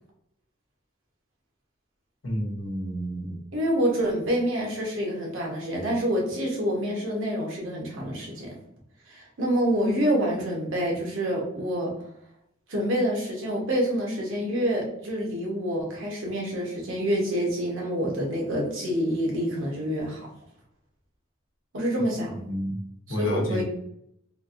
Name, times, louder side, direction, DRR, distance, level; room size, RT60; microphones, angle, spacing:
voice 1, 2.2-3.4 22.5-22.8 23.1-23.6, equal, 85° left, -1 dB, 0.8 m, -30 dB
voice 2, 3.5-8.5 9.1-11.9 12.7-20.3 21.7-22.3 23.1-23.6, equal, 75° right, -2 dB, 1.0 m, -27 dB
3.2 x 2.5 x 2.5 m, 0.75 s
head